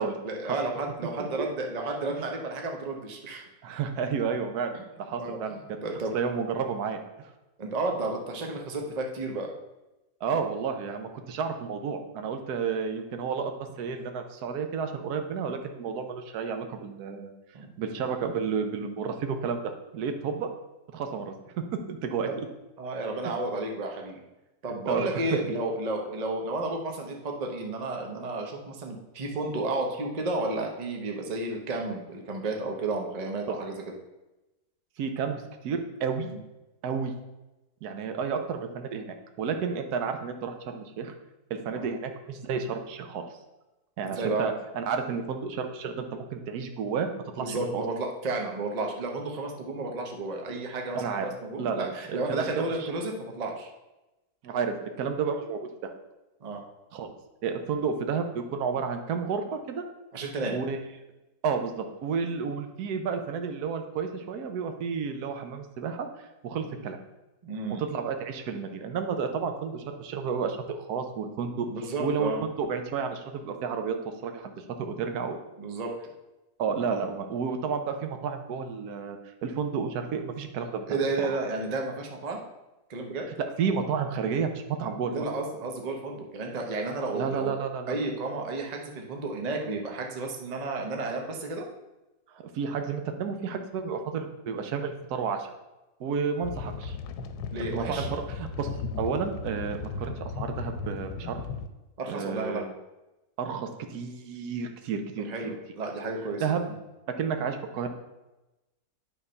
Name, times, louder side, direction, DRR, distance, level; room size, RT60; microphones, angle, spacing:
voice 1, 0.2-3.5 4.7-4.8 5.2-5.4 5.8-6.1 7.6-9.5 17.5-17.7 22.3-22.4 22.8-24.2 24.6-33.8 36.3-36.4 41.7-41.9 44.1-44.5 47.4-53.7 56.4-56.6 60.1-60.6 67.4-67.8 71.7-72.4 75.6-75.9 76.9-77.0 80.9-82.4 82.9-83.3 85.1-87.5 87.9-91.7 97.5-98.1 102.0-102.6 105.3-106.8, right 2 dB, 30° right, 1 dB, 0.8 m, -32 dB
voice 2, 3.6-5.6 6.1-7.3 10.2-17.3 17.8-20.5 20.9-21.5 21.9-22.5 24.9-25.2 35.0-36.3 36.8-37.1 37.8-41.1 41.5-43.2 44.0-47.8 50.9-51.3 51.6-52.9 54.4-55.9 56.9-57.1 57.4-59.8 60.5-60.8 61.4-66.1 66.4-67.0 67.8-71.7 72.0-72.3 72.6-74.5 74.8-75.4 76.6-81.3 83.4-85.1 87.1-88.0 92.5-95.5 96.0-97.0 97.6-98.7 99.0-101.4 102.1-102.6 103.4-105.3 106.4-106.6 107.2-107.9, right 6 dB, 75° right, 6 dB, 1.3 m, -31 dB
sound 1, 96.4-101.7, left 4 dB, 85° left, 1.2 m, -36 dB
9.1 x 3.6 x 5.4 m, 1.0 s
omnidirectional pair, 1.7 m